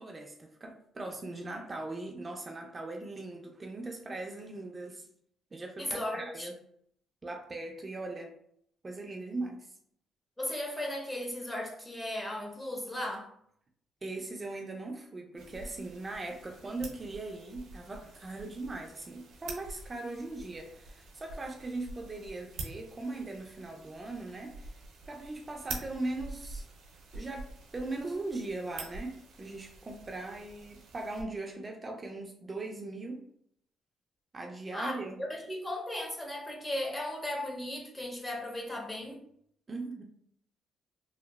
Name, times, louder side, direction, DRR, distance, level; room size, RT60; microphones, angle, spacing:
voice 1, 0.0-5.1 5.5-6.5 7.2-8.3 8.8-9.7 14.0-24.8 25.1-26.7 27.1-27.5 27.7-33.2 34.3-35.2 39.7-40.0, right 2 dB, 30° right, 0.3 m, -39 dB
voice 2, 5.8-6.5 10.4-13.3 34.7-39.2, left 1 dB, 20° left, 0.7 m, -36 dB
sound 1, 15.4-31.2, right 3 dB, 80° right, 0.5 m, -47 dB
2.9 x 2.1 x 2.2 m
cardioid pair, 90°, 0 cm